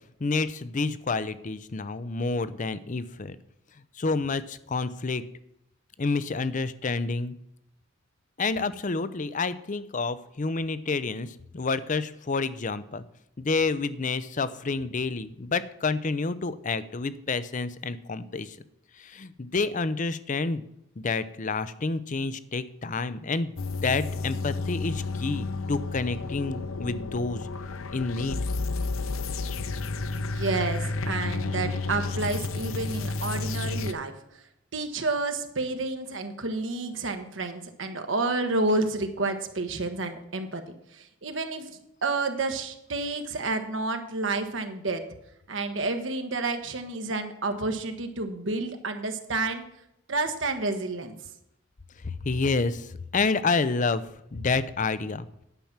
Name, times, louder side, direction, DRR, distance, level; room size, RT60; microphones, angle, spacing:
voice 1, 0.2-3.4 4.0-5.2 6.0-7.4 8.4-11.3 11.5-13.1 13.4-18.6 19.0-20.6 21.0-23.6 23.8-27.4 27.9-28.4 52.0-54.0 54.3-55.3, left 4 dB, 40° left, 15 dB, 0.6 m, -29 dB
sound 1, 23.6-33.9, left 3 dB, 90° left, 0.7 m, -31 dB
voice 2, 30.1-34.4 34.7-40.6 40.9-41.7 42.0-45.0 45.5-49.6 50.1-51.2, right 3 dB, 65° right, 6 dB, 1.2 m, -30 dB
10.5 x 5.9 x 7.3 m, 0.80 s
head